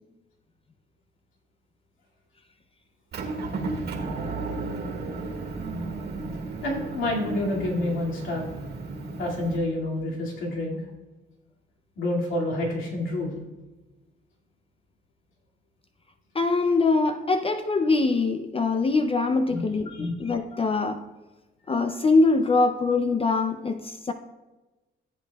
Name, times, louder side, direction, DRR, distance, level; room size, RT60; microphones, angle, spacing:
Motor vehicle (road) / Engine, 3.1-9.6, right 3 dB, 55° right, 1.7 m, -33 dB
voice 1, 6.6-8.5 9.2-10.8 12.0-13.4 19.5-19.6 19.9-20.1, left 1 dB, 80° left, -3 dB, 2.3 m, -28 dB
voice 2, 16.3-21.0 21.7-24.1, left 3 dB, 30° left, 8 dB, 0.5 m, -23 dB
15.0 x 8.0 x 2.3 m, 1.2 s
cardioid pair, 90°, 20 cm